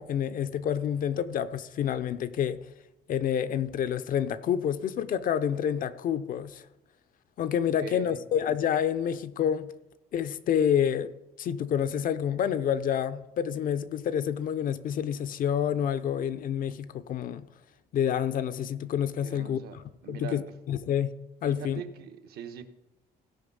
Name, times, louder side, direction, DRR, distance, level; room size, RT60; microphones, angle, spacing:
voice 1, 0.0-2.6 3.1-6.6 7.4-9.7 10.1-11.1 11.4-17.5 17.9-19.8 20.1-21.1 21.4-21.8, left 9 dB, 55° left, 0.7 m, -28 dB
voice 2, 7.8-8.2 19.2-20.4 21.5-22.6, right 8 dB, 70° right, 1.2 m, -42 dB
16.0 x 5.5 x 5.5 m
cardioid pair, 110°, 17 cm